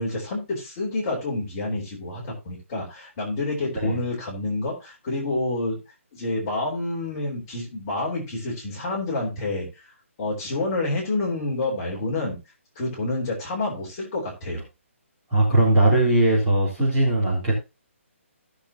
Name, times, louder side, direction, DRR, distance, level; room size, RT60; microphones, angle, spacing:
voice 1, 0.0-5.8 6.1-9.7 10.2-12.4 12.7-14.6, left 2 dB, 20° left, -4 dB, 3.4 m, -28 dB
voice 2, 15.3-17.7, right 1 dB, 10° right, -7 dB, 2.9 m, -20 dB
15.5 x 6.7 x 2.8 m, 0.26 s
hypercardioid pair, 175°, 7 cm